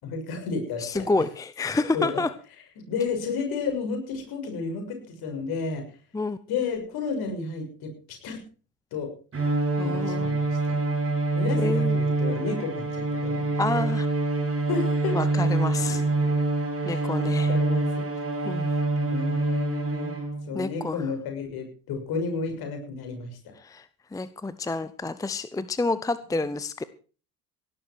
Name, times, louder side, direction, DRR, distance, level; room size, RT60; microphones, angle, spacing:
voice 1, 0.0-1.0 1.9-2.1 2.9-5.8 6.5-8.4 8.9-9.1 9.8-10.8 11.3-13.5 13.8-13.9 14.7-15.2 16.8-18.1 19.0-20.2 20.5-23.4 26.3-26.4, left 4 dB, 50° left, 5 dB, 6.4 m, -32 dB
voice 2, 0.8-2.3 6.1-6.4 9.8-10.3 11.6-12.0 13.6-14.1 15.1-16.0 16.8-17.5 18.4-18.8 20.5-21.0 23.6-26.8, left 3 dB, 5° left, 15 dB, 0.7 m, -29 dB
Bowed string instrument, 9.3-20.5, right 2 dB, 30° right, 7.4 m, -26 dB
17.5 x 12.0 x 4.6 m, 0.38 s
figure-of-eight pair, 65°, 47 cm